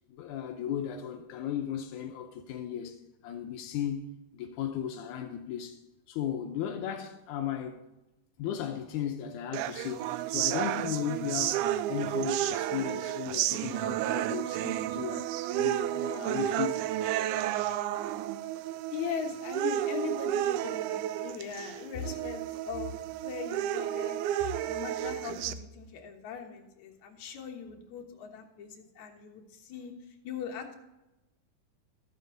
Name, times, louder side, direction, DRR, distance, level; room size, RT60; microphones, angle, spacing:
voice 1, 0.1-5.8 6.1-7.8 8.4-16.8, left 9 dB, 90° left, 2.2 m, -36 dB
sound 1, 9.5-25.5, right 12 dB, 90° right, 2.0 m, -32 dB
voice 2, 18.9-29.9 30.2-30.8, left 7 dB, 75° left, 2.6 m, -40 dB
13.0 x 8.2 x 3.9 m
omnidirectional pair, 3.5 m